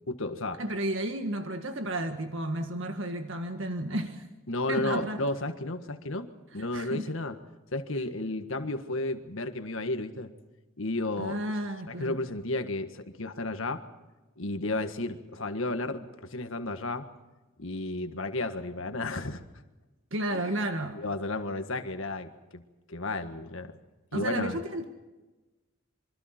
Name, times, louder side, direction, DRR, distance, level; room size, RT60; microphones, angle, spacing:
voice 1, 0.1-0.6 4.5-7.4 7.7-10.3 10.8-11.4 11.9-13.8 14.4-17.1 17.6-19.4 20.3-20.5 20.9-22.6 22.9-23.7 24.1-24.6, left 2 dB, 70° left, 8 dB, 1.6 m, -33 dB
voice 2, 0.6-4.2 4.7-5.2 6.7-7.1 11.2-12.2 20.1-21.0 24.1-24.8, right 1 dB, 65° right, 6 dB, 1.6 m, -32 dB
27.0 x 24.0 x 4.4 m, 1.1 s
head